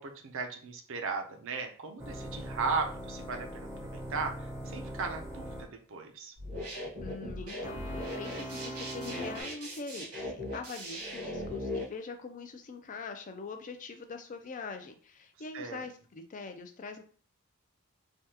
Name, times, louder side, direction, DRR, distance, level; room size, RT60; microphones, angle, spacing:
voice 1, 0.0-6.3 15.5-15.8, right 4 dB, 60° right, 4 dB, 0.5 m, -37 dB
sound 1, 2.0-5.7 7.6-9.4, equal, 15° right, 0.6 m, -41 dB
sound 2, 6.4-11.8, left 1 dB, 90° right, 1.4 m, -38 dB
voice 2, 7.0-17.0, left 4 dB, 35° left, 6 dB, 0.4 m, -43 dB
3.4 x 2.2 x 2.8 m, 0.42 s
head